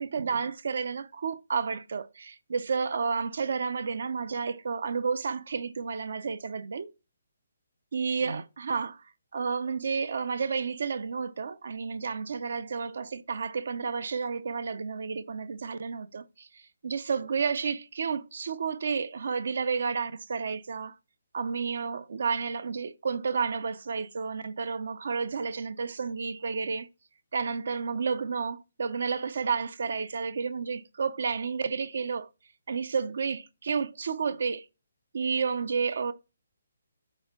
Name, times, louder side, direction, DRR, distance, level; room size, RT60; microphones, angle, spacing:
voice 1, 0.0-6.9 7.9-9.0 9.3-20.9 21.3-26.9 27.3-32.3 32.7-34.7 35.1-36.1, right 5 dB, 65° right, 0.6 m, -31 dB
5.4 x 4.4 x 6.1 m
hypercardioid pair, 165°, 0 cm